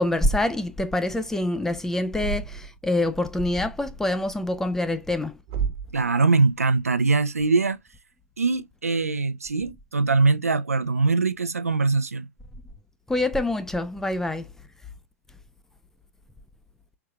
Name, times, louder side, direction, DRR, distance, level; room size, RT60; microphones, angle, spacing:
voice 1, 0.0-5.4 13.1-14.5, left 1 dB, 5° left, 0.5 m, -25 dB
Thump thud, 2.1-2.8 5.5-6.0, right 7 dB, 45° right, 1.0 m, -30 dB
voice 2, 5.9-7.8 8.4-12.3, right 3 dB, 85° right, 0.5 m, -22 dB
4.6 x 3.5 x 2.3 m
figure-of-eight pair, 100°, 8 cm